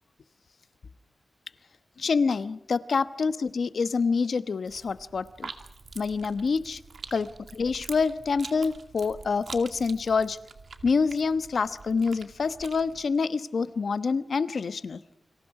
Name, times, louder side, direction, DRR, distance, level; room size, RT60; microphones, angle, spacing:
voice 1, 2.0-5.5 5.9-6.8 7.1-7.3 7.6-10.4 10.8-15.0, left 5 dB, 60° left, 12 dB, 1.1 m, -26 dB
sound 1, 4.7-13.1, right 4 dB, 60° right, 2.3 m, -45 dB
29.5 x 26.0 x 4.9 m, 0.84 s
wide cardioid pair, 170°, 0 cm